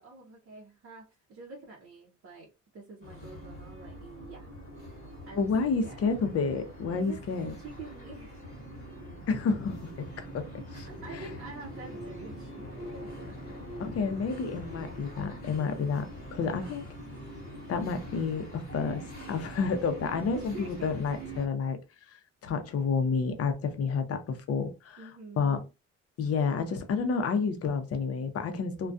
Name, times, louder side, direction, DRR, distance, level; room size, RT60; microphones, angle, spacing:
voice 1, 0.0-4.5 5.3-5.5 5.8-6.0 6.9-8.4 10.7-13.4 16.4-16.7 20.3-21.0 25.0-25.7, right 4 dB, 50° right, 0.7 m, -47 dB
sound 1, 3.0-21.5, right 1 dB, 30° left, 1.0 m, -43 dB
voice 2, 5.4-7.5 9.3-10.5 10.7-11.3 13.8-16.9 17.7-21.8 22.1-25.1 25.4-25.6 26.2-28.9, left 5 dB, 50° left, 0.6 m, -30 dB
2.3 x 2.2 x 2.5 m
cardioid pair, 90°, 30 cm